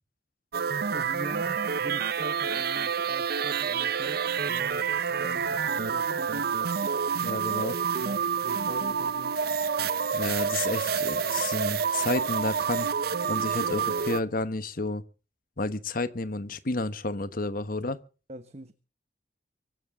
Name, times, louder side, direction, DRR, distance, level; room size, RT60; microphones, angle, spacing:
sound 1, 0.5-14.2, right 6 dB, 60° right, 0.7 m, -28 dB
voice 1, 0.9-6.6 7.2-7.5 8.0-9.5 18.3-18.7, right 1 dB, 35° right, 1.2 m, -43 dB
voice 2, 7.2-7.8 10.1-12.9 13.3-15.0 15.6-18.0, left 2 dB, 50° left, 1.2 m, -31 dB
24.5 x 13.0 x 3.7 m
head